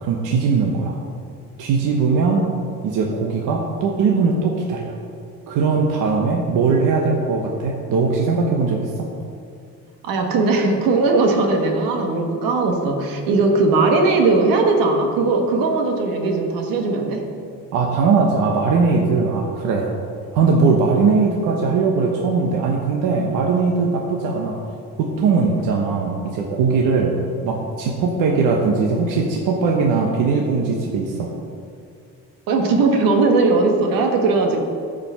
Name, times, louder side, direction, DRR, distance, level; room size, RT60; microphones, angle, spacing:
voice 1, 0.0-1.0 1.6-2.5 2.8-5.0 5.5-9.1 17.7-19.9 20.3-24.6 25.0-27.1 27.4-31.3, right 4 dB, 70° right, 0 dB, 1.1 m, -20 dB
voice 2, 10.0-17.2 32.5-34.6, right 3 dB, 90° right, 2 dB, 1.6 m, -18 dB
14.0 x 5.2 x 5.6 m, 2.3 s
cardioid pair, 165°, 33 cm